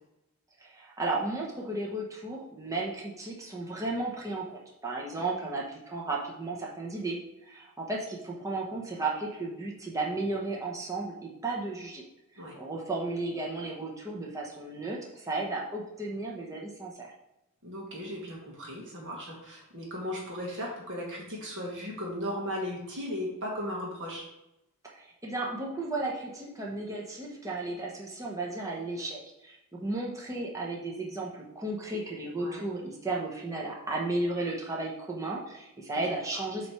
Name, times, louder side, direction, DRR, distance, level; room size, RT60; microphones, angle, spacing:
voice 1, 0.6-7.2 7.5-12.0 12.5-17.1 24.9-36.7, right 2 dB, 15° right, -3 dB, 0.9 m, -34 dB
voice 2, 17.6-24.2 32.4-32.6, equal, 60° right, -2 dB, 1.5 m, -36 dB
7.7 x 3.2 x 5.6 m, 0.88 s
head